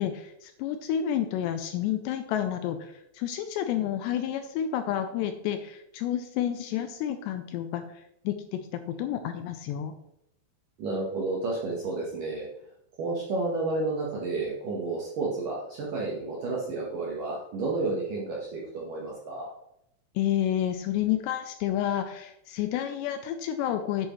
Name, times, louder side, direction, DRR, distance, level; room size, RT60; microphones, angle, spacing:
voice 1, 0.0-7.8 8.3-10.0 20.2-24.1, left 10 dB, 85° left, 8 dB, 2.5 m, -30 dB
voice 2, 10.8-12.5 13.0-19.5, right 3 dB, 70° right, -3 dB, 2.1 m, -31 dB
8.8 x 8.4 x 3.1 m, 0.78 s
omnidirectional pair, 5.5 m